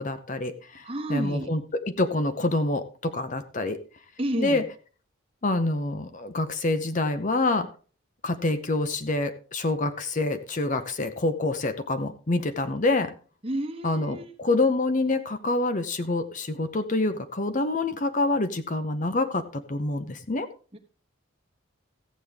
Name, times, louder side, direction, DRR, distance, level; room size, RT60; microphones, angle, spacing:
voice 1, 0.0-0.8 1.1-3.8 4.4-4.6 5.4-7.7 8.2-13.1 13.8-20.5, left 2 dB, 35° left, 10 dB, 0.7 m, -26 dB
voice 2, 0.8-1.5 4.2-4.6 13.4-14.3 20.7-20.8, right 1 dB, 25° right, 4 dB, 1.2 m, -30 dB
14.5 x 8.3 x 3.5 m, 0.38 s
head